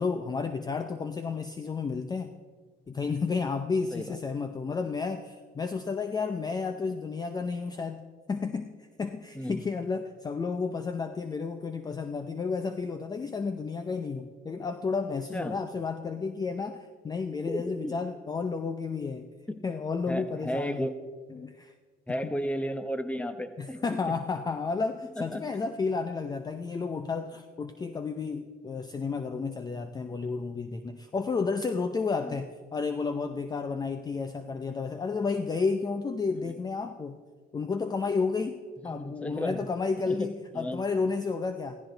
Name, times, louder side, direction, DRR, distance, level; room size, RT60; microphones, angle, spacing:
voice 1, 0.0-2.3 2.9-19.3 19.6-20.9 21.3-21.7 22.2-22.3 23.6-37.2 37.5-41.8, left 4 dB, 25° left, 9 dB, 0.6 m, -32 dB
voice 2, 17.5-18.0 19.5-19.6 20.1-20.9 22.1-24.2 25.2-25.4 32.2-32.4 36.4-36.5 38.8-39.7 40.1-40.3 40.5-40.8, equal, 10° left, 10 dB, 1.0 m, -34 dB
15.0 x 15.0 x 3.9 m, 1.5 s
cardioid pair, 110°, 17 cm